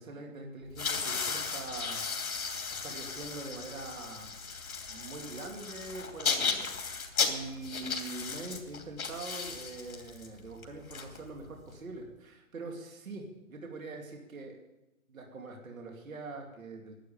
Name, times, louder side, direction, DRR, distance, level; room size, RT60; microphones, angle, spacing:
voice 1, 0.0-2.4 2.8-4.3 4.9-14.6 15.1-16.9, right 3 dB, 70° right, 1 dB, 2.6 m, -43 dB
sound 1, 0.7-11.7, left 5 dB, 75° left, 2.8 m, -35 dB
11.5 x 8.7 x 8.7 m, 0.96 s
hypercardioid pair, 175°, 42 cm